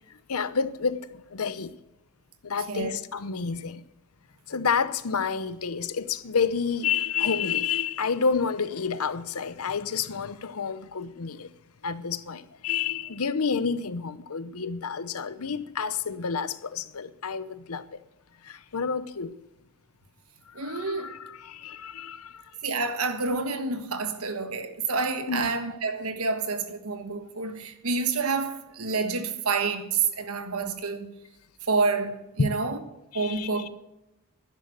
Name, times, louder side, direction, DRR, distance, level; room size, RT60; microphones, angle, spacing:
voice 1, 0.1-1.7 2.4-3.8 4.5-11.5 11.8-18.0 18.4-19.3 20.5-22.5 25.3-25.5 32.4-32.7 33.1-33.7, left 6 dB, 90° left, 0.8 m, -29 dB
voice 2, 20.5-21.2 22.6-31.1 31.7-32.8 33.1-33.7, right 4 dB, 85° right, 1.4 m, -28 dB
11.5 x 10.5 x 6.7 m
head